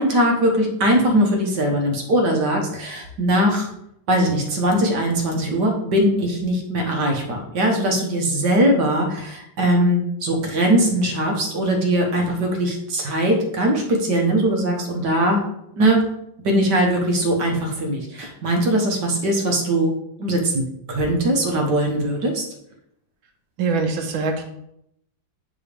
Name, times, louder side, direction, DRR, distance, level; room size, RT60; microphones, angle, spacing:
voice 1, 0.0-3.7 4.1-15.4 15.8-16.0 16.4-19.9 20.2-22.4, right 1 dB, 60° right, 1 dB, 1.7 m, -20 dB
voice 2, 23.6-24.4, right 4 dB, 80° right, 4 dB, 1.8 m, -23 dB
9.7 x 4.1 x 3.4 m, 0.78 s
omnidirectional pair, 2.1 m